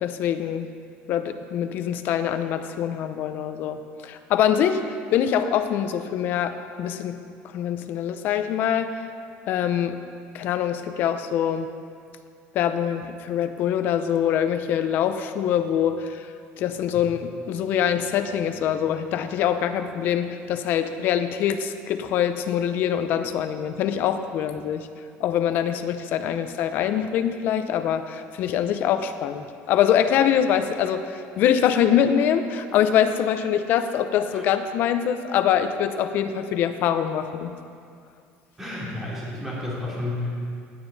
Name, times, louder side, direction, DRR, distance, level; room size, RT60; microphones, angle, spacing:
voice 1, 0.0-0.7 1.1-3.8 4.0-4.8 5.1-7.2 7.5-8.9 9.5-10.0 10.3-11.7 12.5-16.3 16.6-24.9 25.2-31.0 31.4-37.5, left 9 dB, 45° left, 9 dB, 0.7 m, -24 dB
voice 2, 38.6-40.3, left 2 dB, 10° right, -7 dB, 3.0 m, -31 dB
16.5 x 9.0 x 4.1 m, 2.3 s
cardioid pair, 170°, 4 cm